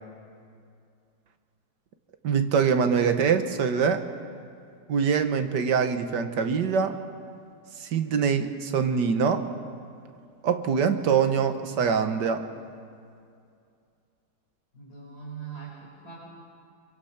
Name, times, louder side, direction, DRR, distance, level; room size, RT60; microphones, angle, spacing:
voice 1, 2.2-4.1 4.9-7.0 7.8-9.5 10.4-12.5, right 6 dB, 60° right, 8 dB, 1.6 m, -24 dB
voice 2, 14.7-16.2, right 6 dB, 50° left, -7 dB, 5.5 m, -41 dB
24.5 x 24.0 x 5.8 m, 2.4 s
omnidirectional pair, 2.1 m